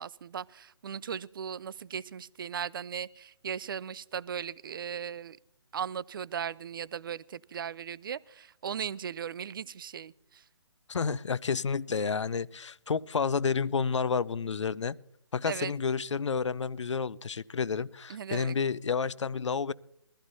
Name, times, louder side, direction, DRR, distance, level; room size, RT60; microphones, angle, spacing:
voice 1, 0.0-5.4 5.7-10.4 15.5-15.7 18.1-18.6, right 8 dB, 45° right, 22 dB, 0.4 m, -37 dB
voice 2, 10.9-15.0 15.3-19.7, left 5 dB, 70° left, 20 dB, 0.6 m, -30 dB
22.5 x 15.0 x 2.7 m, 0.74 s
figure-of-eight pair, 145°, 16 cm